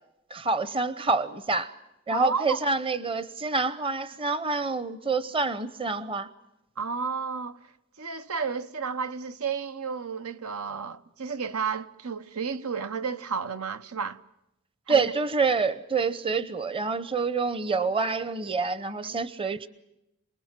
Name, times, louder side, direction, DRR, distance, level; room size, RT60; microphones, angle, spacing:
voice 1, 0.3-1.7 2.1-6.3 14.9-19.7, right 4 dB, 25° right, 0.9 m, -27 dB
voice 2, 2.1-2.6 6.8-7.7 8.0-14.2 14.9-15.1 18.9-19.2, right 5 dB, 85° right, 1.2 m, -32 dB
28.5 x 20.5 x 7.5 m
head